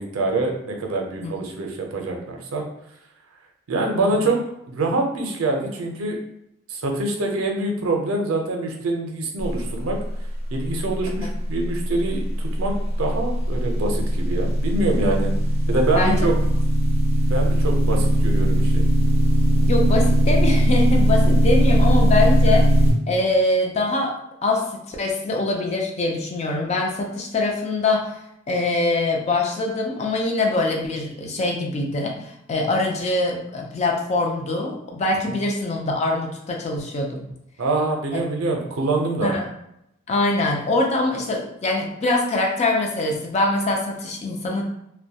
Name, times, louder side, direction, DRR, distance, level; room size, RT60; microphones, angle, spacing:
voice 1, 0.0-2.6 3.7-4.4 4.7-6.2 6.7-10.0 10.5-12.7 13.0-15.3 15.7-16.3 17.3-18.8 35.3-35.4 37.6-39.3, right 2 dB, 85° right, 2 dB, 0.5 m, -25 dB
sound 1, 12.1-22.9, equal, 30° right, 0.4 m, -19 dB
voice 2, 19.6-22.7 23.1-28.2 28.5-37.2 38.1-38.2 39.2-39.5 40.1-44.6, left 2 dB, 35° left, 0 dB, 0.4 m, -23 dB
2.2 x 2.1 x 2.7 m, 0.80 s
head